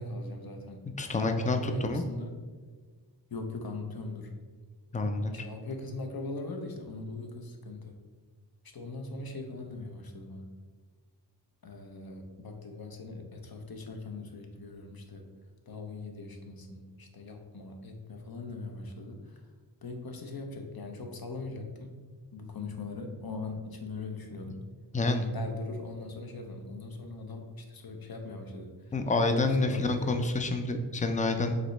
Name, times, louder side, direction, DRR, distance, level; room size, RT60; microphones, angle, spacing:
voice 1, 0.0-0.9 1.2-2.4 3.3-4.3 5.3-8.0 8.7-10.5 11.6-15.3 15.7-19.4 19.8-21.9 22.3-24.6 24.9-30.2, left 3 dB, 55° left, 4 dB, 0.8 m, -40 dB
voice 2, 1.0-2.0 4.9-5.3 24.9-25.3 28.9-31.6, left 2 dB, 20° left, 6 dB, 0.4 m, -28 dB
5.0 x 3.2 x 3.1 m, 1.5 s
wide cardioid pair, 55°, 44 cm